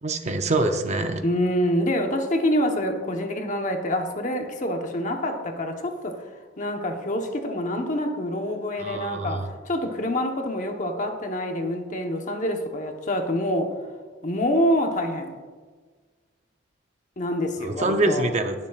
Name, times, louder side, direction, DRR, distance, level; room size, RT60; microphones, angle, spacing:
voice 1, 0.0-1.2 8.8-9.5 17.6-18.5, right 2 dB, 35° right, 6 dB, 0.6 m, -25 dB
voice 2, 1.2-6.2 6.6-13.7 14.2-15.4 17.2-18.3, equal, 40° left, 4 dB, 1.0 m, -26 dB
20.0 x 7.2 x 2.4 m, 1.5 s
head